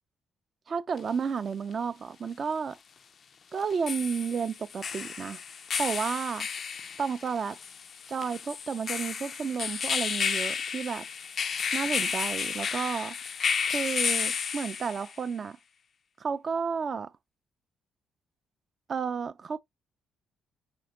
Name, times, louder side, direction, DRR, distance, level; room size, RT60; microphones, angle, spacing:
voice 1, 0.7-2.8 3.5-5.4 5.8-6.5 7.0-7.6 8.1-11.1 11.7-13.2 13.7-15.6 16.2-17.1 18.9-19.6, right 6 dB, 45° right, 0.3 m, -32 dB
sound 1, 1.0-1.1 3.6-15.2, left 6 dB, 50° left, 0.3 m, -32 dB
5.2 x 2.2 x 3.7 m
cardioid pair, 90°, 0 cm